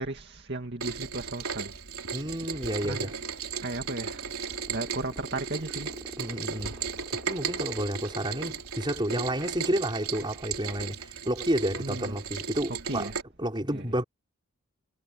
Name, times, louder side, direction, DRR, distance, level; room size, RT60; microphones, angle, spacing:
voice 1, 0.0-1.8 2.8-3.1 3.6-5.9 11.8-12.2 12.7-13.2 13.7-13.9, right 2 dB, 50° right, 2.1 m, -35 dB
Rain, 0.8-13.2, right 6 dB, 75° right, 3.5 m, -36 dB
voice 2, 2.1-3.1 6.2-6.8 7.3-13.1 13.4-14.0, right 1 dB, 20° right, 4.3 m, -30 dB
sound 1, 3.1-9.0, equal, 5° right, 3.9 m, -48 dB
head